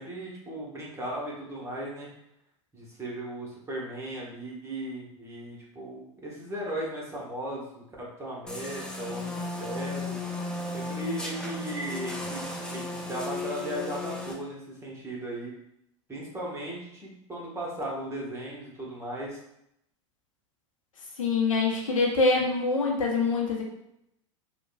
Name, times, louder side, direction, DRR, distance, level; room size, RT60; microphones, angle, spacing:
voice 1, 0.0-2.1 2.7-10.2 10.7-15.5 16.1-19.4, right 1 dB, 15° right, -4 dB, 1.1 m, -37 dB
sound 1, 8.5-14.3, left 2 dB, 5° left, 0.5 m, -35 dB
voice 2, 21.2-23.6, left 3 dB, 85° left, -1 dB, 0.7 m, -24 dB
3.3 x 2.2 x 2.2 m, 0.78 s
hypercardioid pair, 90°, 17 cm